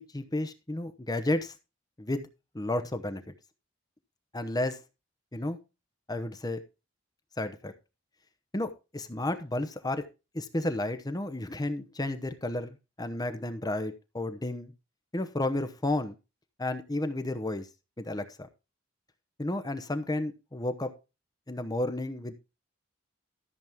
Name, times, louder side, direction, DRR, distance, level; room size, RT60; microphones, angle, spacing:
voice 1, 0.0-1.5 2.0-2.3 2.5-3.2 4.3-4.8 5.3-5.6 6.1-6.6 7.4-7.7 8.5-10.0 10.3-14.7 15.1-16.1 16.6-17.7 18.0-18.5 19.4-20.9 21.5-22.3, left 1 dB, 20° left, 10 dB, 0.9 m, -32 dB
13.5 x 7.3 x 3.5 m, 0.29 s
head